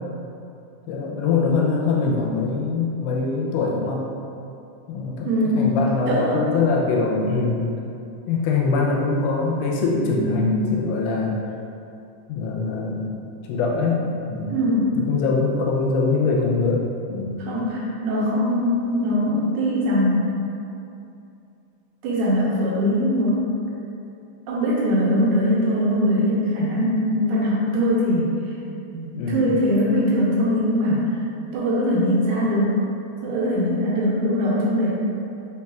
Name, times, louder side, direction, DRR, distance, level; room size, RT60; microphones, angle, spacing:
voice 1, 0.9-4.0 4.9-5.3 5.6-7.7 8.3-11.4 12.3-13.1 13.5-14.6 15.0-17.4 29.1-29.6, left 4 dB, 85° left, -2 dB, 2.0 m, -23 dB
voice 2, 5.2-5.8 6.1-6.5 10.1-10.9 14.5-14.9 17.4-20.5 22.0-23.5 24.5-28.6 28.9-32.8 33.2-34.9, equal, 75° right, -5 dB, 1.9 m, -22 dB
4.2 x 3.9 x 2.3 m, 2.6 s
omnidirectional pair, 3.6 m